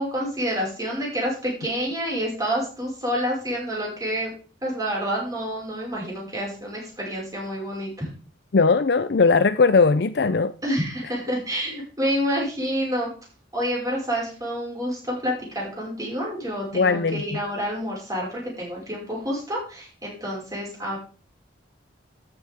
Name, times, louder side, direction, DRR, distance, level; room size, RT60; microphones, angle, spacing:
voice 1, 0.0-4.3 4.6-8.1 10.6-13.1 13.5-21.0, equal, 20° right, 5.5 m, -28 dB
voice 2, 8.5-10.5 16.7-17.2, left 4 dB, 55° left, 0.5 m, -19 dB
13.5 x 7.9 x 3.6 m
head